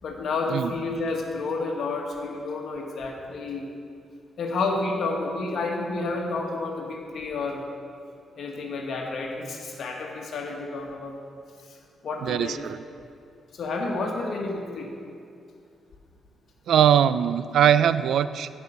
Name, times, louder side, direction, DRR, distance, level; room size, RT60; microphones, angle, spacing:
voice 1, 0.0-3.7 4.4-7.7 8.4-11.2 11.6-12.6 13.5-14.9, left 3 dB, 65° left, 1 dB, 1.6 m, -30 dB
voice 2, 12.2-12.8 16.7-18.5, right 9 dB, 75° right, 14 dB, 0.4 m, -21 dB
15.5 x 5.6 x 7.0 m, 2.5 s
cardioid pair, 95°, 0 cm